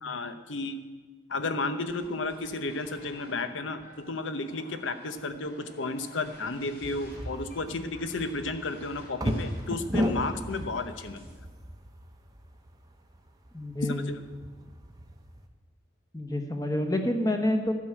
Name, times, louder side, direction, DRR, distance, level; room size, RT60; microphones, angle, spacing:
voice 1, 0.0-0.8 1.3-11.3 13.8-14.2, left 3 dB, 80° left, 10 dB, 0.9 m, -33 dB
sound 1, 1.8-11.4, left 1 dB, 50° left, 2.9 m, -52 dB
sound 2, 6.8-15.5, equal, 20° right, 0.8 m, -35 dB
voice 2, 13.5-14.1 16.1-17.7, left 1 dB, 20° left, 4 dB, 1.0 m, -28 dB
12.0 x 6.2 x 8.8 m, 1.4 s
head